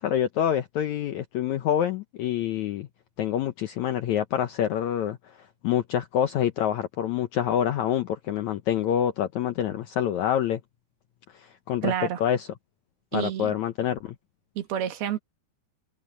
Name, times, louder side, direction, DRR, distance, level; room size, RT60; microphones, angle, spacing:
voice 1, 0.0-2.9 3.2-5.2 5.6-10.6 11.3-11.9 12.2-12.5 13.1-14.2, left 10 dB, 75° left, 1.7 m, -26 dB
voice 2, 11.8-12.2 13.1-13.5 14.6-15.2, right 10 dB, 85° right, 3.7 m, -29 dB
omnidirectional pair, 4.3 m